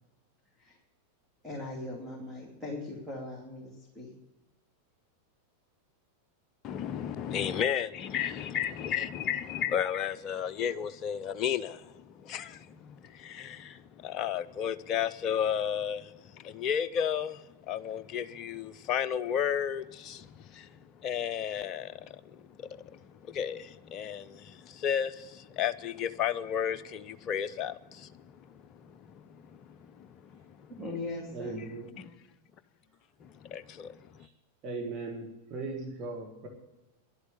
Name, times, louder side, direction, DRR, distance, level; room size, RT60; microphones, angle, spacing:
voice 1, 1.4-4.1 30.8-31.6, left 2 dB, ahead, 2.8 m, -39 dB
voice 2, 6.6-23.0 23.3-28.1 28.5-29.5 29.9-30.3 32.0-32.1 33.2-34.0, left 8 dB, 35° left, 0.6 m, -33 dB
voice 3, 31.3-31.9 34.6-36.5, right 3 dB, 35° right, 2.0 m, -38 dB
11.0 x 8.1 x 9.7 m
figure-of-eight pair, 90°, 0 cm